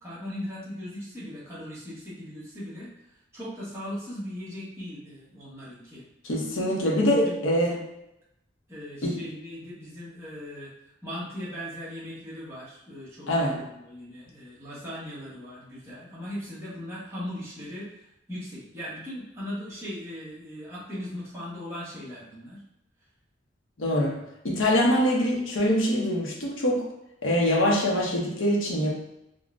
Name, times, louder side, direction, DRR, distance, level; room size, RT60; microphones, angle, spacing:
voice 1, 0.0-2.9 3.3-6.1 6.8-7.8 8.7-10.7 11.0-22.6, equal, 15° right, -9 dB, 0.9 m, -39 dB
voice 2, 6.2-7.8 9.0-9.3 13.3-13.6 23.8-26.9 27.2-28.9, equal, 85° left, -2 dB, 0.7 m, -24 dB
3.7 x 2.1 x 2.4 m, 0.85 s
head